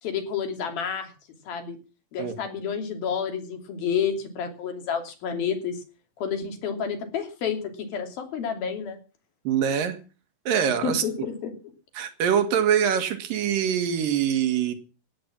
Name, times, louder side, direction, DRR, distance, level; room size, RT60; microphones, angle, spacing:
voice 1, 0.0-1.1 1.5-1.8 2.1-5.8 6.2-9.0 10.8-11.5, left 7 dB, 85° left, 6 dB, 4.7 m, -30 dB
voice 2, 9.5-10.0 10.5-11.0 12.0-14.7, right 8 dB, 75° right, 9 dB, 3.3 m, -24 dB
16.5 x 9.7 x 7.3 m, 0.35 s
omnidirectional pair, 4.1 m